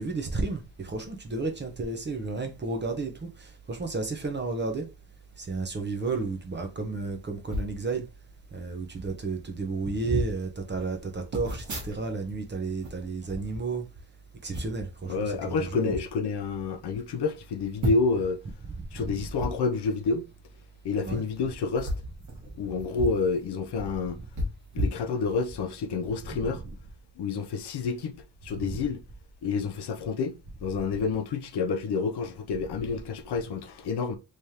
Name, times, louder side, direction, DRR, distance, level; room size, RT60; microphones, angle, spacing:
voice 1, 0.0-4.9 5.4-8.0 8.5-13.9 14.4-15.9 18.7-19.2 21.0-21.2 26.3-26.8 28.5-28.8, right 3 dB, 25° right, 0.6 m, -32 dB
sound 1, 7.5-7.8 8.6-8.7 8.9-9.2 9.8-10.3 11.3-12.4 12.6-14.0 14.5-14.9 15.6-16.0 16.6-16.7 16.9-17.0 17.8-18.3 19.3-19.5 21.0-21.1 21.7-23.2 23.5-23.6 24.3-25.6 26.0-26.2, equal, 40° right, 1.3 m, -33 dB
voice 2, 15.1-18.4 18.9-20.3 20.8-21.9 22.6-24.2 24.7-26.6 27.2-28.1 28.4-29.0 29.4-34.2, left 4 dB, 60° left, 0.6 m, -29 dB
3.5 x 3.2 x 2.8 m
wide cardioid pair, 180°, 45 cm